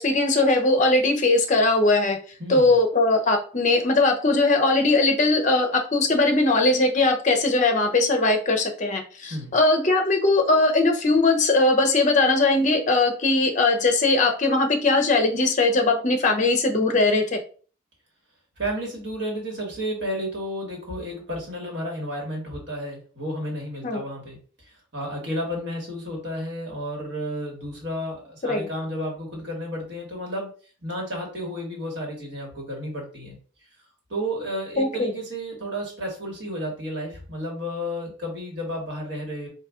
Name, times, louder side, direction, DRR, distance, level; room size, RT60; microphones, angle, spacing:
voice 1, 0.0-2.2 2.5-17.4 23.8-24.0 28.4-28.7 34.8-35.1, left 2 dB, 40° left, 5 dB, 0.7 m, -20 dB
voice 2, 2.4-2.7 9.3-9.5 18.6-30.5 30.8-33.4 34.1-39.5, equal, 65° right, -1 dB, 1.6 m, -32 dB
4.0 x 2.7 x 3.6 m, 0.41 s
head